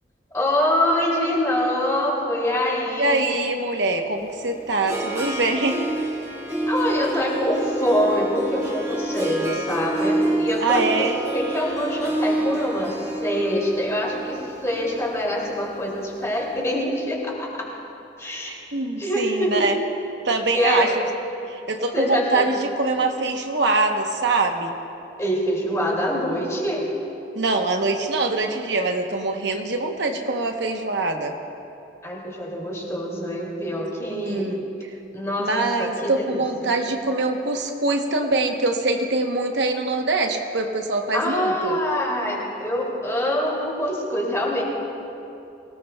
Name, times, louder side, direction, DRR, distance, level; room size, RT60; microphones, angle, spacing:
voice 1, 0.3-3.3 6.7-12.9 13.2-17.6 18.2-18.5 19.0-19.7 20.5-21.0 21.9-22.5 25.2-26.9 32.0-34.5 35.1-35.5 35.8-36.7 41.1-44.6, left 1 dB, 15° left, -3 dB, 2.5 m, -25 dB
voice 2, 3.0-5.9 10.6-11.2 18.4-19.8 20.2-21.0 21.5-24.7 27.3-31.4 34.1-34.6 35.4-41.8, right 3 dB, 65° right, 4 dB, 0.9 m, -24 dB
Harp, 4.2-16.3, right 2 dB, 15° right, 1.3 m, -28 dB
23.5 x 18.0 x 2.3 m, 2.8 s
head